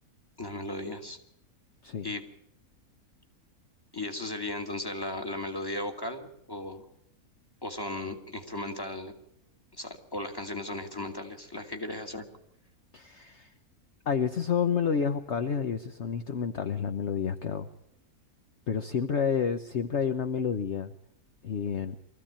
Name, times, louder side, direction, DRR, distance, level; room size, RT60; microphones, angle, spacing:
voice 1, 0.4-1.2 2.0-2.2 3.9-6.8 7.6-9.1 9.8-12.3, left 1 dB, 15° left, 5 dB, 2.3 m, -36 dB
voice 2, 12.9-13.5 14.1-17.7 18.7-20.9 21.4-22.0, left 7 dB, 50° left, 8 dB, 1.2 m, -29 dB
24.0 x 15.0 x 8.8 m, 0.78 s
omnidirectional pair, 1.6 m